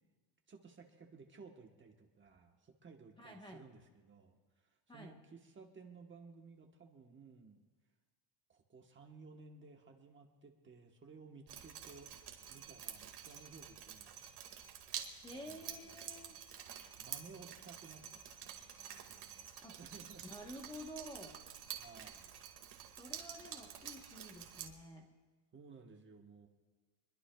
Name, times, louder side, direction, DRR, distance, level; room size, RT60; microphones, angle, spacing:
voice 1, 0.5-7.6 8.5-12.1 12.5-14.2 15.3-16.4 17.0-19.5 19.8-20.3 21.8-22.3 25.5-26.5, right 4 dB, 25° right, 2 dB, 1.1 m, -57 dB
voice 2, 3.2-3.6 4.9-5.2 15.2-16.4 19.6-19.8 20.2-21.4 23.0-25.1, equal, 10° left, 2 dB, 1.0 m, -50 dB
Drip, 11.5-24.7, right 9 dB, 55° right, 1.9 m, -49 dB
27.0 x 22.0 x 2.3 m, 1.4 s
cardioid pair, 175°, 49 cm